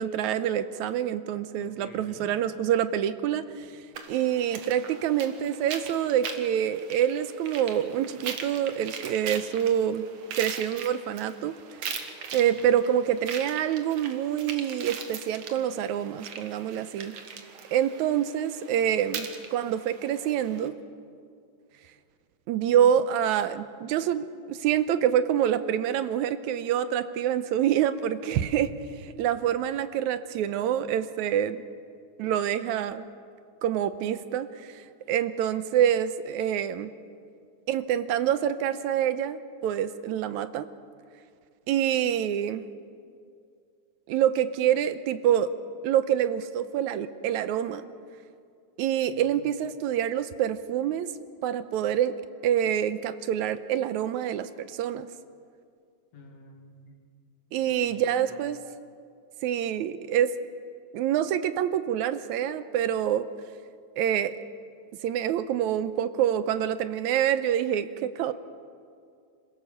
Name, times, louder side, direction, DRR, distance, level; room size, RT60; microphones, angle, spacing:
voice 1, 0.0-3.7 4.1-10.1 10.4-11.5 12.3-17.2 17.7-20.7 22.5-28.7 29.0-31.6 32.2-33.1 33.6-36.9 37.7-40.7 41.7-42.6 44.1-45.5 45.8-47.9 48.8-51.1 51.4-52.2 52.4-55.1 57.5-58.6 59.4-60.3 60.9-63.3 64.0-64.3 65.0-68.3, right 10 dB, 80° right, 12 dB, 2.0 m, -26 dB
voice 2, 1.6-2.4 12.3-12.7 49.1-49.5 56.1-57.0 57.6-58.4, left 4 dB, 65° left, 2 dB, 3.3 m, -50 dB
sound 1, 3.9-20.7, right 6 dB, 60° right, 2.4 m, -40 dB
27.0 x 16.5 x 7.0 m, 2.3 s
omnidirectional pair, 3.5 m